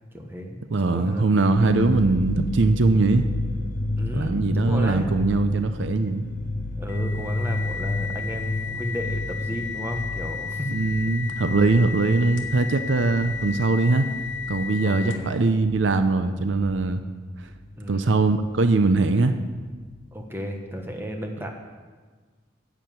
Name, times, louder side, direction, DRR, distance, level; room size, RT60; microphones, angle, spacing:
voice 1, 0.1-0.6 0.9-1.3 4.0-5.2 6.8-10.8 13.2-13.3 14.8-15.3 17.8-18.1 20.1-21.5, equal, 10° right, 3 dB, 1.2 m, -33 dB
voice 2, 0.7-3.3 4.1-6.2 10.7-14.1 14.5-17.0 17.4-17.5 17.9-19.4, right 3 dB, 70° right, 9 dB, 0.6 m, -21 dB
sound 1, 1.6-16.7 16.9-18.0 18.4-18.5 18.8-19.5, left 1 dB, 45° left, 0.8 m, -31 dB
sound 2, 6.9-15.4, left 6 dB, 75° left, 1.2 m, -34 dB
10.0 x 7.2 x 7.9 m, 1.4 s
head